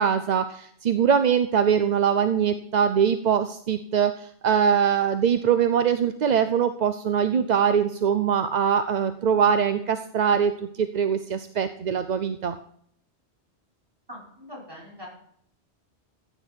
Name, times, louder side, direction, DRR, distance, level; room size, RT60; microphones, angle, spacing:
voice 1, 0.0-12.6, right 7 dB, 50° right, 10 dB, 0.6 m, -22 dB
voice 2, 14.1-15.1, left 1 dB, 20° right, -4 dB, 5.2 m, -43 dB
15.0 x 9.0 x 4.4 m, 0.66 s
omnidirectional pair, 1.2 m